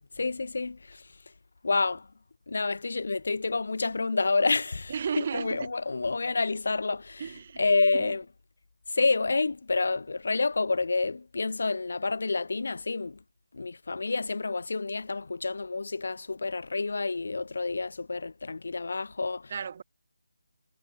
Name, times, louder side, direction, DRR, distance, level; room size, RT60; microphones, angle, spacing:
voice 1, 0.1-1.1 1.6-2.1 2.5-7.3 7.6-8.2 8.9-13.2 13.5-19.5, left 3 dB, 60° left, 0.4 m, -29 dB
voice 2, 4.9-5.7 7.2-7.6 7.9-8.1 19.5-19.8, right 6 dB, 35° right, 0.7 m, -34 dB
figure-of-eight pair, 165°, 0 cm